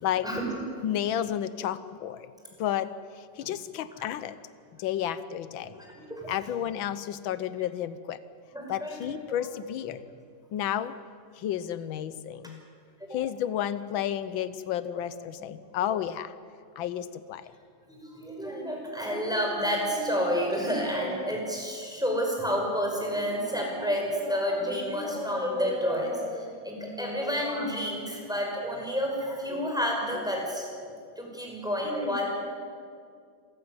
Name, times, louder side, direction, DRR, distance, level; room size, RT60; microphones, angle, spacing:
voice 1, 0.8-2.3 2.6-4.4 4.7-5.8 6.3-8.2 8.7-10.0 10.5-11.0 11.3-12.6 13.1-16.3 16.8-17.5, left 10 dB, 90° left, 14 dB, 1.6 m, -31 dB
voice 2, 5.8-6.3 8.5-8.9 13.0-13.2 18.1-30.7 31.2-32.3, equal, ahead, -1 dB, 5.5 m, -30 dB
26.5 x 15.0 x 9.7 m, 2.2 s
omnidirectional pair, 2.1 m